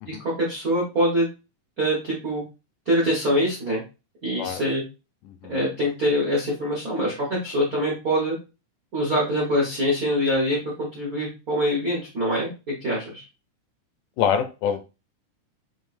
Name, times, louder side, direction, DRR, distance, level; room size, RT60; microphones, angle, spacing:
voice 1, 0.1-1.3 1.8-2.4 2.9-3.8 4.2-4.8 5.5-8.4 8.9-13.2, equal, 90° right, -4 dB, 0.7 m, -24 dB
voice 2, 14.2-14.8, left 8 dB, 80° left, 8 dB, 2.0 m, -24 dB
7.2 x 2.5 x 2.5 m, 0.29 s
omnidirectional pair, 3.8 m